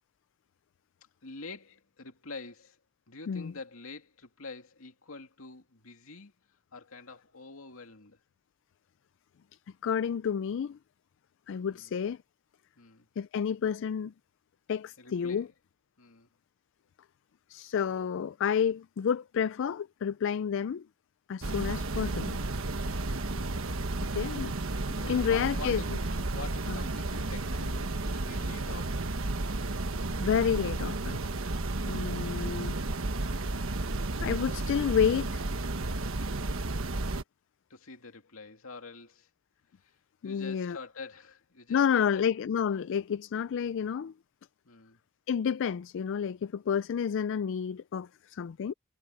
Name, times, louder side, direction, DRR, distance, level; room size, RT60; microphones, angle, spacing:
voice 1, 1.2-2.8 3.1-6.3 6.7-8.2 11.7-12.0 12.8-13.1 15.0-15.5 16.0-16.3 23.3-23.7 25.1-26.0 26.3-29.1 37.7-39.3 39.8-40.0 40.2-42.3 43.8-43.9 44.6-45.0, left 3 dB, 80° left, 2.5 m, -46 dB
voice 2, 9.8-10.8 11.5-12.2 13.2-14.1 14.7-15.5 17.5-20.8 21.3-22.4 24.1-24.5 24.9-25.8 26.7-26.8 30.2-31.2 31.9-32.8 34.2-35.4 40.2-40.8 41.7-44.1 45.3-48.7, left 7 dB, 60° left, 0.4 m, -30 dB
sound 1, 21.4-37.2, right 2 dB, 70° right, 1.3 m, -32 dB
head